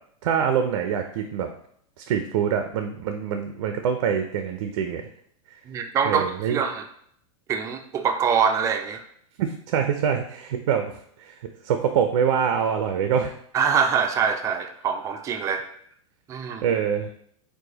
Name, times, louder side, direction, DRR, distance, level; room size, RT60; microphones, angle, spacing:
voice 1, 0.2-1.5 2.0-5.0 6.1-6.6 9.4-10.9 11.2-11.3 11.6-13.3 16.6-17.1, right 7 dB, 70° right, 6 dB, 0.5 m, -24 dB
voice 2, 5.7-6.8 7.5-9.0 13.5-15.7 16.3-16.7, right 6 dB, 20° right, 6 dB, 0.3 m, -24 dB
4.8 x 2.2 x 3.9 m, 0.66 s
supercardioid pair, 135°, 18 cm